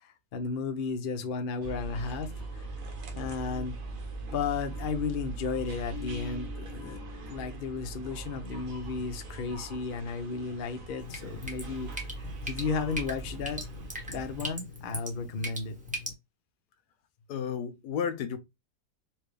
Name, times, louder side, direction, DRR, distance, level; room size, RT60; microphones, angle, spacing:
voice 1, 0.0-2.7 3.1-3.7 4.3-7.0 7.3-12.1 12.5-13.6 14.1-15.7, left 5 dB, 60° left, 0.5 m, -34 dB
sound 1, 1.6-14.5, right 3 dB, 60° right, 1.2 m, -41 dB
Bass guitar, 5.9-8.3, left 11 dB, 40° left, 1.1 m, -47 dB
Drip, 11.0-16.1, equal, 5° right, 0.8 m, -40 dB
voice 2, 17.3-18.4, left 7 dB, 75° left, 1.2 m, -32 dB
4.4 x 2.3 x 3.2 m
omnidirectional pair, 1.7 m